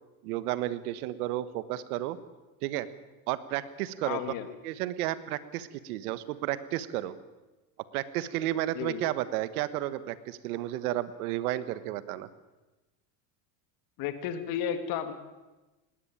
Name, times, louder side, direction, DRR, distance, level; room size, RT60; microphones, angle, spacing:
voice 1, 0.2-2.2 2.6-2.9 3.3-4.2 4.6-7.1 7.9-12.3, right 14 dB, 85° right, 15 dB, 1.5 m, -32 dB
voice 2, 4.0-4.5 8.7-9.0 14.0-15.1, left 9 dB, 50° left, 10 dB, 2.2 m, -33 dB
19.5 x 17.5 x 8.9 m, 1.1 s
supercardioid pair, 145°, 43 cm